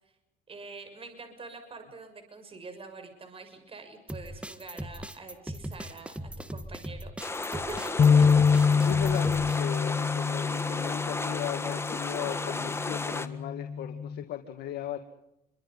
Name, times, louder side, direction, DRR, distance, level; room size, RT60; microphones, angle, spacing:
voice 1, 0.5-7.1 7.5-7.9 8.3-8.4, right 4 dB, 35° right, 7 dB, 6.8 m, -45 dB
sound 1, 4.1-9.6, right 1 dB, 5° right, 1.7 m, -39 dB
sound 2, 7.2-13.3, left 3 dB, 15° left, 1.7 m, -34 dB
sound 3, 8.0-14.2, left 6 dB, 40° left, 1.4 m, -26 dB
voice 2, 8.8-15.0, left 11 dB, 70° left, 5 dB, 2.2 m, -37 dB
28.5 x 24.5 x 5.6 m, 0.84 s
cardioid pair, 110°, 17 cm